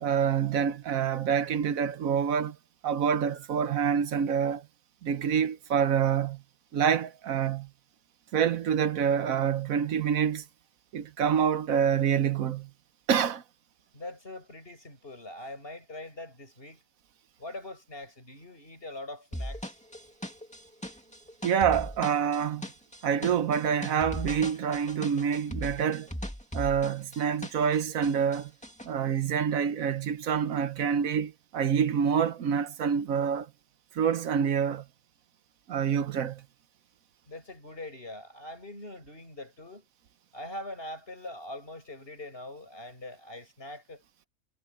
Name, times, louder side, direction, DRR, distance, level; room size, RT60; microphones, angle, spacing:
voice 1, 0.0-2.6 2.8-4.7 5.0-6.4 6.7-7.7 8.3-10.4 10.9-12.7 13.1-13.4 21.4-22.6 23.0-26.1 26.5-28.5 28.8-33.5 33.9-34.8 35.7-36.4, right 7 dB, 80° right, 1.3 m, -27 dB
voice 2, 13.9-16.8 17.4-19.8 37.3-39.9 40.3-44.0, left 1 dB, 45° left, 8.2 m, -42 dB
sound 1, 19.3-27.8 28.0-28.9, equal, 5° left, 2.2 m, -38 dB
omnidirectional pair, 1.4 m